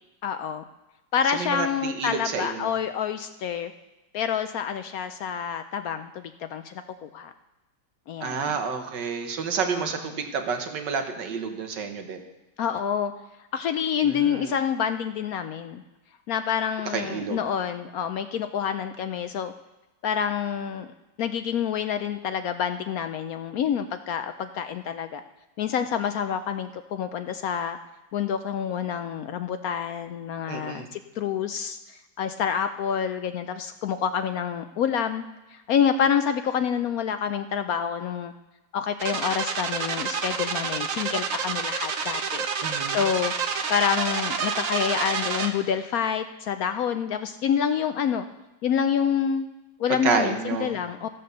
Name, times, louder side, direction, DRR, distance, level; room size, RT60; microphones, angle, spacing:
voice 1, 0.2-0.6 1.1-3.7 4.1-7.3 8.1-8.5 9.7-9.8 12.6-13.1 13.5-15.8 16.3-19.5 20.0-20.9 21.2-25.2 25.6-27.8 28.1-35.2 35.5-38.3 38.7-42.4 42.9-43.3 43.7-48.3 48.6-49.5 49.8-51.1, left 8 dB, 70° left, 9 dB, 0.9 m, -27 dB
voice 2, 1.3-2.8 8.2-12.2 14.0-14.5 16.9-17.4 30.5-30.9 42.6-43.0 50.0-50.7, right 5 dB, 80° right, 6 dB, 1.8 m, -29 dB
sound 1, 39.0-45.5, right 6 dB, 55° right, 1.2 m, -28 dB
14.0 x 7.7 x 6.7 m, 1.1 s
omnidirectional pair, 1.9 m